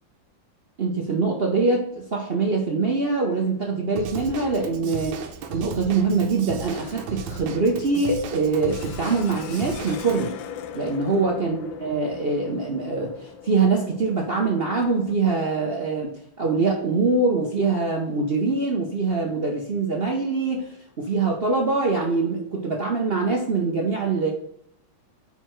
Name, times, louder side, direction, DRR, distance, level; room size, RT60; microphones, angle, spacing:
voice 1, 0.8-5.2 5.5-10.3 10.7-24.3, right 3 dB, 60° right, 0 dB, 0.6 m, -24 dB
Drum kit / Drum, 4.0-10.2, right 5 dB, 85° right, 1.5 m, -35 dB
sound 1, 6.6-15.2, left 8 dB, 85° left, 1.4 m, -41 dB
5.5 x 4.6 x 4.6 m, 0.72 s
omnidirectional pair, 2.1 m